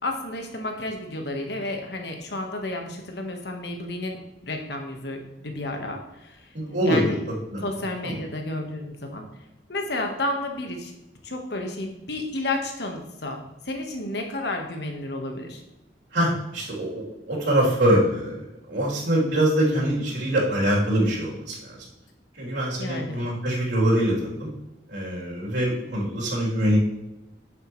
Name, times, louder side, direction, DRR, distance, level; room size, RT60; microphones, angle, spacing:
voice 1, 0.0-6.5 6.8-7.1 7.6-9.3 9.7-10.9 11.2-15.6 22.8-23.2, left 2 dB, 65° left, 3 dB, 1.4 m, -31 dB
voice 2, 6.5-7.2 7.5-7.7 8.0-8.2 16.1-21.8 22.3-24.5 24.9-26.8, right 1 dB, 80° right, -5 dB, 3.4 m, -24 dB
10.0 x 7.4 x 3.2 m, 0.97 s
head